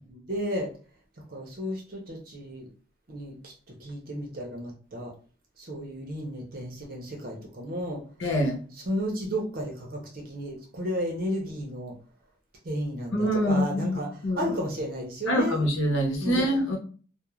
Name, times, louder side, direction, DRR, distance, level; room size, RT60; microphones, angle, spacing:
voice 1, 0.1-0.7 1.3-2.7 3.1-3.5 3.8-5.1 5.6-8.0 8.9-11.9 12.6-14.1 14.4-15.6 16.2-16.4, equal, 45° right, 0 dB, 0.6 m, -33 dB
voice 2, 8.2-8.6 13.1-14.5 15.3-16.8, equal, 80° left, 0 dB, 0.8 m, -25 dB
2.3 x 2.0 x 3.0 m, 0.39 s
head